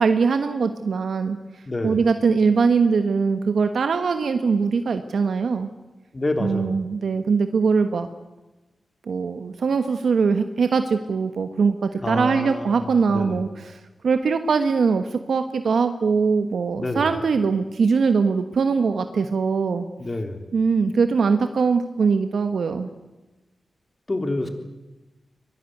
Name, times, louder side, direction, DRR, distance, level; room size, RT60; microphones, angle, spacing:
voice 1, 0.0-1.4 1.8-5.7 6.4-8.1 9.1-19.9 20.5-22.9, right 5 dB, 80° right, 8 dB, 1.3 m, -21 dB
voice 2, 1.7-2.0 6.1-6.8 12.0-13.4 16.8-17.1 20.0-20.5 24.1-24.5, left 2 dB, 30° left, 6 dB, 3.5 m, -28 dB
Sigh, 11.9-12.5, right 2 dB, 30° right, 2.1 m, -36 dB
23.5 x 19.0 x 9.4 m, 1.1 s
cardioid pair, 75°, 0 cm